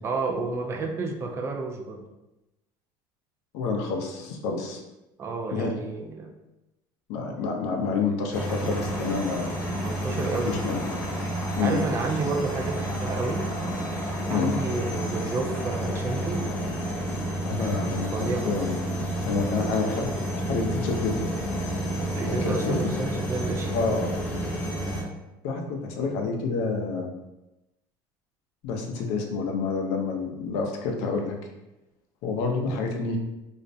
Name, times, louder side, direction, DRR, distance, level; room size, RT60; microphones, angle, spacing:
voice 1, 0.0-2.1 5.2-6.3 9.8-10.5 11.6-13.5 14.3-16.5 17.6-18.5 22.1-23.9, right 3 dB, 25° right, 2 dB, 0.3 m, -31 dB
voice 2, 3.5-4.8 5.5-5.8 7.1-9.5 10.4-11.0 11.6-11.8 14.3-14.5 17.4-18.7 19.3-21.3 22.3-22.9 23.7-24.1 25.4-27.1 28.6-31.4 32.2-33.2, left 4 dB, 75° left, 2 dB, 0.5 m, -28 dB
sound 1, 8.3-25.0, right 1 dB, 15° left, 0.6 m, -30 dB
2.4 x 2.0 x 2.6 m, 0.96 s
supercardioid pair, 115°, 10 cm